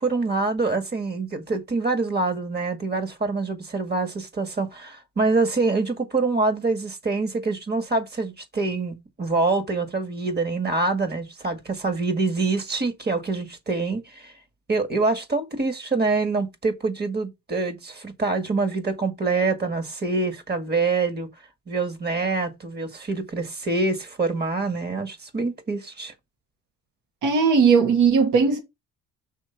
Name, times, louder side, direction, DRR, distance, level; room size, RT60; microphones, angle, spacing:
voice 1, 0.0-14.3 14.7-21.3 21.7-26.1, right 3 dB, 35° right, 1.9 m, -25 dB
voice 2, 27.2-28.6, right 5 dB, 80° right, 1.9 m, -18 dB
6.1 x 3.3 x 5.8 m
cardioid pair, 90°, 30 cm